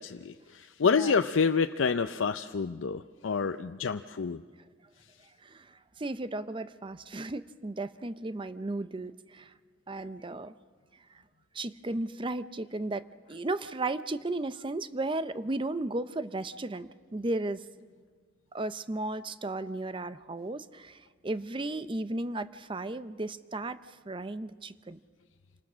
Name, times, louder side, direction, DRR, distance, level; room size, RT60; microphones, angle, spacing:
voice 1, 0.0-4.4, left 5 dB, 90° left, 8 dB, 0.5 m, -28 dB
voice 2, 0.8-1.1 5.4-9.5 9.9-10.5 11.5-17.9 18.5-25.0, right 2 dB, 25° right, 13 dB, 0.6 m, -35 dB
27.5 x 19.5 x 6.2 m, 1.5 s
head